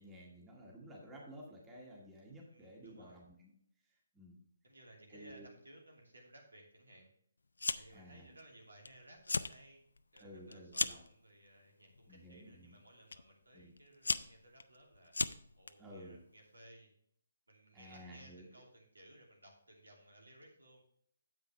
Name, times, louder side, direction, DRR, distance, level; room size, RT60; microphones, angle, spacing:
voice 1, 0.0-3.5 4.1-4.4 5.1-5.5 7.9-8.3 10.2-11.0 12.1-12.8 13.5-13.7 15.8-16.2 17.7-18.5, equal, 10° right, -3 dB, 1.9 m, -53 dB
voice 2, 2.5-3.2 4.6-7.1 7.7-9.8 10.1-15.1 15.6-16.9 17.5-20.8, right 1 dB, 75° right, 0 dB, 2.6 m, -59 dB
Fire, 7.6-8.1 8.4-8.9 9.2-9.5 10.0-11.1 11.9-12.2 13.1-13.2 13.8-15.7, left 3 dB, 70° left, 0.4 m, -36 dB
9.5 x 7.9 x 3.3 m, 0.66 s
figure-of-eight pair, 140°, 0 cm